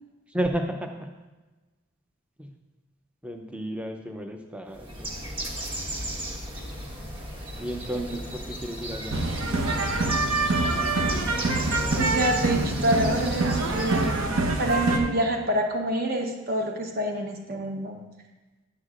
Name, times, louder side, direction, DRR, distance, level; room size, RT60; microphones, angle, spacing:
voice 1, 0.3-1.1 2.4-2.6 3.2-5.1 7.6-9.2, equal, 5° right, 3 dB, 0.5 m, -32 dB
Bird, 4.7-14.4, equal, 25° right, 1.2 m, -35 dB
sound 1, 9.1-15.0, right 2 dB, 75° right, 0.9 m, -25 dB
voice 2, 12.0-14.2 14.6-18.0, right 1 dB, 45° right, 3 dB, 1.0 m, -27 dB
10.5 x 8.0 x 2.5 m, 1.2 s
head